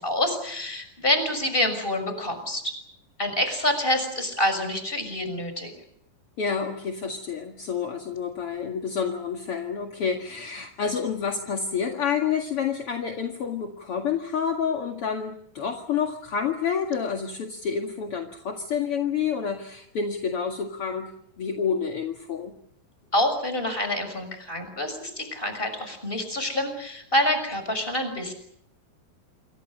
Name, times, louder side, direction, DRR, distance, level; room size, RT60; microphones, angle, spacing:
voice 1, 0.0-2.7 3.2-5.7 23.1-28.3, left 1 dB, 10° left, 8 dB, 6.1 m, -27 dB
voice 2, 6.4-21.1 21.4-22.5, left 6 dB, 45° left, 2 dB, 2.1 m, -29 dB
28.0 x 25.0 x 6.6 m, 0.71 s
omnidirectional pair, 4.9 m